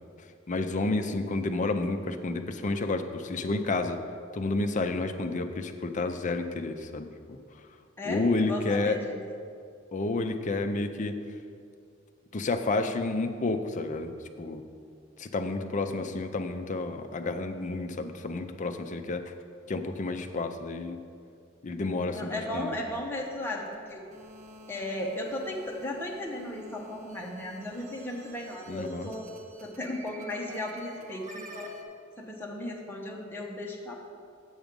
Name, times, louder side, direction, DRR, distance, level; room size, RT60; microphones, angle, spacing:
voice 1, 0.5-4.0 4.3-7.4 8.0-9.0 9.9-11.2 12.3-14.6 15.2-19.3 19.7-21.0 21.6-22.8 28.7-29.1, left 3 dB, 40° left, 7 dB, 0.5 m, -30 dB
voice 2, 8.0-9.2 22.1-24.0 24.7-29.3 29.6-31.7 32.2-33.9, left 1 dB, 10° left, -2 dB, 1.0 m, -36 dB
sound 1, 22.3-31.8, right 1 dB, 40° right, 0.8 m, -49 dB
8.0 x 6.2 x 5.2 m, 2.3 s
head